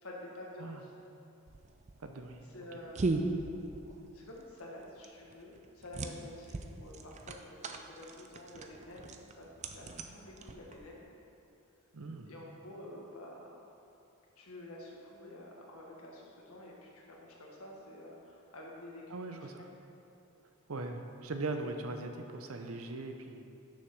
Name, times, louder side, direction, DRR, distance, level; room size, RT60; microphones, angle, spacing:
voice 1, 0.0-0.9 2.5-3.3 4.1-11.0 12.3-13.6 14.4-19.7, left 1 dB, 75° left, -2 dB, 1.6 m, -49 dB
sound 1, 1.5-11.0, right 3 dB, 30° right, 0.4 m, -39 dB
voice 2, 2.0-2.5 2.7-2.8 11.9-12.3 19.1-19.7 20.7-23.4, right 2 dB, 70° right, 5 dB, 0.7 m, -40 dB
6.5 x 6.5 x 6.0 m, 2.7 s
head